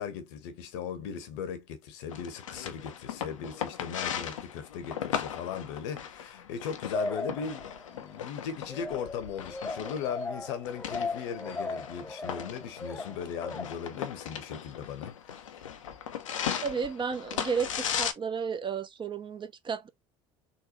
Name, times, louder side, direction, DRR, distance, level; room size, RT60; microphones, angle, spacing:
voice 1, 0.0-15.6, left 7 dB, 70° left, 0.9 m, -38 dB
sound 1, 2.1-18.1, left 8 dB, 85° left, 0.6 m, -38 dB
sound 2, 6.9-8.0 8.7-14.0, left 3 dB, 10° left, 0.4 m, -37 dB
voice 2, 16.6-19.9, right 6 dB, 30° right, 0.8 m, -33 dB
3.9 x 2.2 x 3.0 m
hypercardioid pair, 70°, 16 cm